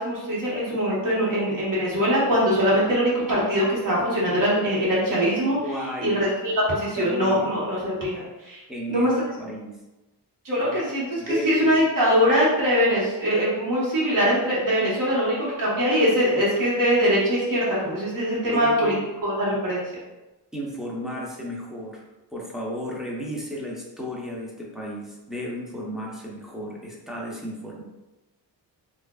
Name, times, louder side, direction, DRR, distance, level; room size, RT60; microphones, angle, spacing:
voice 1, 0.0-5.6 6.0-8.6 8.9-9.1 10.4-18.9 19.2-19.8, equal, 50° right, -6 dB, 1.3 m, -22 dB
voice 2, 5.6-6.2 7.0-7.6 8.7-9.1 9.4-9.8 10.6-10.7 11.2-11.8 18.5-19.1 20.5-22.0 22.3-27.8, left 1 dB, ahead, -3 dB, 0.5 m, -33 dB
4.6 x 2.5 x 2.3 m, 1.1 s
wide cardioid pair, 155°, 43 cm